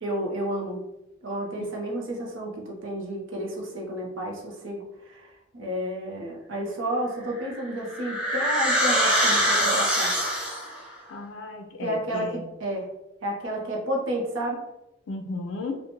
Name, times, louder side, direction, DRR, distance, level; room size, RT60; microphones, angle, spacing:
voice 1, 0.0-0.9 1.2-10.2 11.8-12.9 13.2-14.6, right 1 dB, 85° right, -1 dB, 0.7 m, -31 dB
sound 1, 7.4-10.8, equal, 5° right, 0.7 m, -24 dB
voice 2, 11.1-12.4 15.1-15.8, left 3 dB, 75° left, 3 dB, 0.4 m, -34 dB
2.5 x 2.1 x 2.9 m, 0.90 s
head